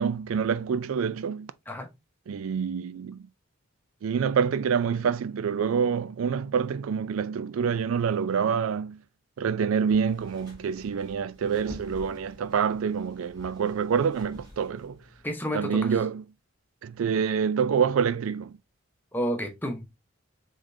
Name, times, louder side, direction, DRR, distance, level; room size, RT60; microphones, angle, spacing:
voice 1, 0.0-1.5 2.3-3.3 4.0-9.0 9.4-15.0 15.5-16.2 16.8-18.6, right 6 dB, 80° right, 0.4 m, -27 dB
sound 1, 9.9-15.3, left 1 dB, 20° right, 2.6 m, -49 dB
voice 2, 15.2-16.0 19.1-19.9, equal, 10° left, 0.9 m, -31 dB
5.0 x 3.6 x 2.6 m
head